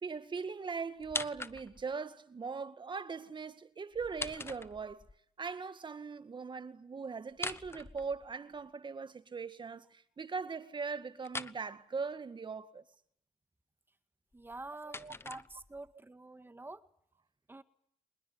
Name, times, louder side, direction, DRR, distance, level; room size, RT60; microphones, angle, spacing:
voice 1, 0.0-5.1 5.4-12.8 14.8-15.2, right 5 dB, 40° right, 2.0 m, -40 dB
sound 1, 1.0-2.0 3.9-5.2 7.3-8.6 11.2-11.6 14.3-15.9, left 3 dB, 20° left, 1.0 m, -42 dB
voice 2, 14.3-16.8 17.5-17.6, right 2 dB, 15° right, 1.9 m, -47 dB
24.5 x 21.0 x 9.7 m
cardioid pair, 80°, 13 cm